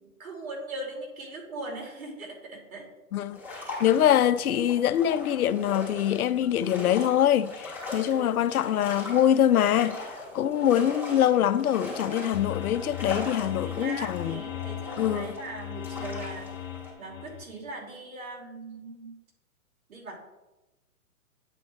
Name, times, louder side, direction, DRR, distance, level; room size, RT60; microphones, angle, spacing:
voice 1, 0.2-2.9 8.1-8.4 10.6-10.8 13.0-19.2 19.9-20.2, right 2 dB, 75° right, 2.7 m, -40 dB
sound 1, 3.3-16.9, left 3 dB, 5° right, 2.7 m, -40 dB
voice 2, 3.8-14.4 15.0-15.3, left 10 dB, 85° left, 0.6 m, -24 dB
sound 2, 12.3-17.4, left 11 dB, 45° left, 1.7 m, -37 dB
9.0 x 4.4 x 4.3 m
hypercardioid pair, 135°, 42 cm